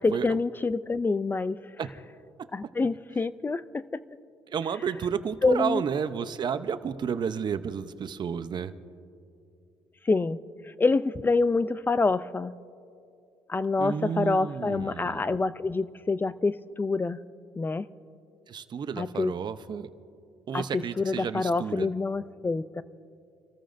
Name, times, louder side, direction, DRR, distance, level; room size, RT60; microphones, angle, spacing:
voice 1, 0.0-1.6 2.5-4.0 5.4-5.8 10.1-10.4 10.8-12.5 13.5-17.2 17.6-17.8 19.0-19.3 20.5-22.8, left 3 dB, 20° left, 15 dB, 0.4 m, -26 dB
voice 2, 4.5-8.7 13.8-15.2 18.5-19.9 20.5-21.9, right 7 dB, 45° right, 11 dB, 0.7 m, -31 dB
29.5 x 14.0 x 2.6 m, 2.5 s
cardioid pair, 90°, 10 cm